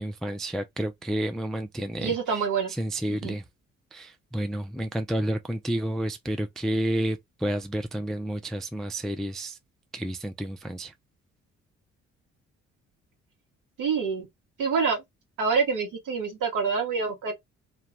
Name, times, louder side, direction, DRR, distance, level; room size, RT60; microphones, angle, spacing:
voice 1, 0.0-2.1 2.8-3.4 3.9-9.6 9.9-10.9, right 1 dB, ahead, 0.3 m, -30 dB
voice 2, 2.0-2.7 3.1-3.4 13.8-14.3 14.6-15.0 15.4-17.3, right 5 dB, 65° right, 1.0 m, -26 dB
2.2 x 2.2 x 3.0 m
hypercardioid pair, 45°, 34 cm